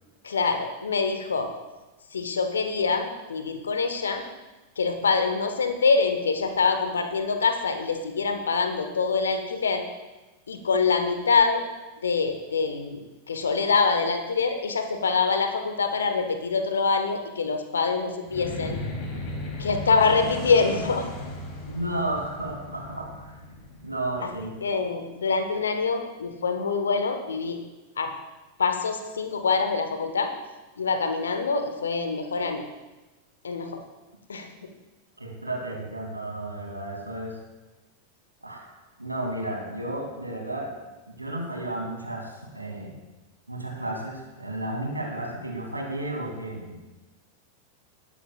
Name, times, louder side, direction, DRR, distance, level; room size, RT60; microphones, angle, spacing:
voice 1, 0.2-1.5 2.1-4.2 4.8-9.8 10.5-11.6 12.0-13.0 13.3-18.8 19.6-21.1 24.2-24.3 24.6-27.6 28.0-28.1 28.6-30.3 30.8-32.6 33.4-33.8 34.3-34.5, left 4 dB, 70° left, 7 dB, 1.2 m, -25 dB
sound 1, 18.3-24.9, left 2 dB, 40° left, 3.2 m, -36 dB
voice 2, 21.7-23.3 23.8-24.5 35.2-37.4 38.4-38.7 39.0-40.7 41.2-43.0 43.5-46.8, right 1 dB, 85° right, 0 dB, 2.7 m, -33 dB
19.0 x 10.0 x 2.4 m, 1.1 s
figure-of-eight pair, 90°, 0 cm